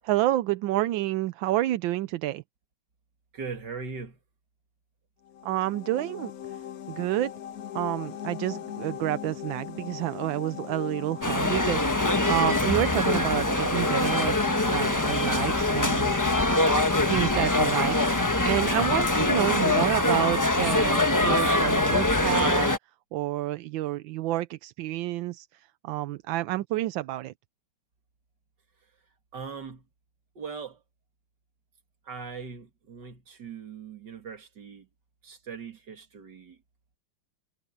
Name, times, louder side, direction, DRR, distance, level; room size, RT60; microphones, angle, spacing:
voice 1, 0.0-2.4 5.4-6.6 6.9-7.3 7.7-16.1 17.0-22.7 23.1-27.3, right 15 dB, 75° right, 1.3 m, -29 dB
voice 2, 3.3-4.2 29.3-29.8 30.4-30.8 32.1-34.9 35.2-36.6, right 5 dB, 55° right, 2.8 m, -40 dB
sound 1, 5.3-19.9, left 10 dB, 60° left, 1.0 m, -39 dB
sound 2, 11.2-22.8, left 2 dB, 15° left, 0.8 m, -24 dB
omnidirectional pair, 2.3 m